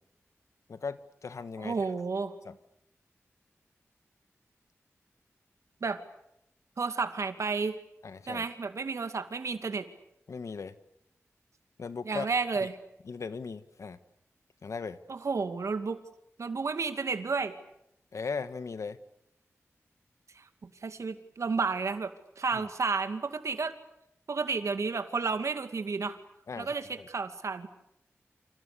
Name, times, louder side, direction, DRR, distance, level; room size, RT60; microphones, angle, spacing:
voice 1, 0.7-1.9 2.4-2.6 8.0-8.4 10.3-10.7 11.8-12.3 12.6-12.7 13.0-14.0 14.6-15.0 18.1-19.0 22.5-22.6 26.5-27.1, left 5 dB, 85° left, 12 dB, 1.5 m, -38 dB
voice 2, 1.6-2.3 5.8-6.0 6.8-7.8 8.3-9.9 12.0-12.7 15.1-16.0 16.4-17.6 20.4-22.1 22.4-23.7 24.3-26.2 26.6-27.7, right 4 dB, 75° right, 8 dB, 2.4 m, -31 dB
30.0 x 27.5 x 6.9 m, 0.80 s
wide cardioid pair, 85°, 5 cm